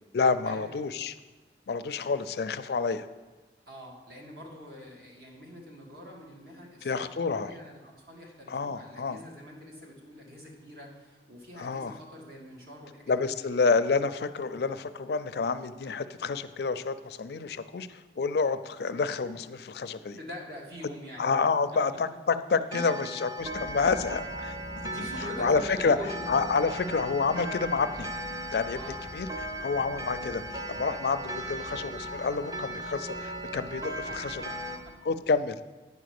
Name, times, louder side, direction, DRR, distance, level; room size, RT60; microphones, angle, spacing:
voice 1, 0.1-1.2 1.7-3.1 6.8-7.5 8.5-9.2 11.6-12.0 13.1-20.2 21.2-24.6 25.4-26.0 26.3-28.1 28.5-28.8 29.1-29.3 29.6-34.4 35.0-35.6, left 4 dB, 65° left, 12 dB, 0.4 m, -28 dB
voice 2, 3.7-13.6 20.2-21.3 22.5-22.9 23.6-23.8 24.7-26.3 28.7-29.0 34.1-35.0, left 1 dB, 55° right, -1 dB, 1.8 m, -45 dB
Clock, 22.7-34.8, equal, 20° right, 0.6 m, -38 dB
sound 1, 23.4-34.8, right 1 dB, 80° right, 2.1 m, -45 dB
9.7 x 5.1 x 6.5 m, 1.3 s
head